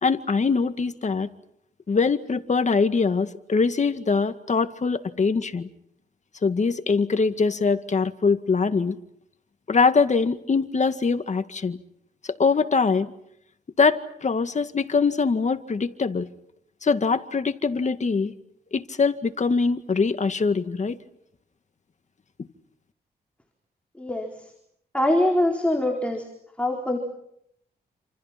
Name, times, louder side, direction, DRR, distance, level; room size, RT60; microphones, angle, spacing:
voice 1, 0.0-1.3 1.9-5.7 6.4-9.0 9.7-11.8 12.4-13.1 13.8-16.3 16.8-18.3 18.7-21.0, left 4 dB, 45° left, 9 dB, 1.9 m, -23 dB
voice 2, 24.0-24.3 24.9-26.3 26.6-27.0, left 1 dB, 5° left, 1 dB, 4.3 m, -23 dB
28.5 x 28.0 x 6.0 m, 0.74 s
cardioid pair, 85°, 17 cm